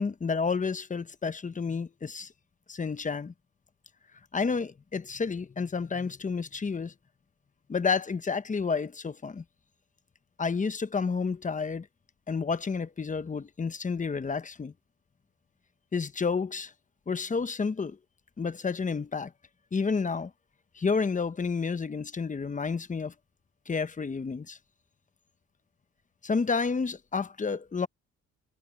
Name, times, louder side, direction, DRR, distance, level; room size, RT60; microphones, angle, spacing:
voice 1, 0.0-2.3 2.7-3.3 4.3-6.9 7.7-9.4 10.4-11.9 12.3-14.7 15.9-16.7 17.1-18.0 18.4-19.3 19.7-20.3 20.7-23.1 23.7-24.6 26.2-27.9, left 5 dB, 25° left, 1.1 m, -30 dB
cardioid pair, 90°, 30 cm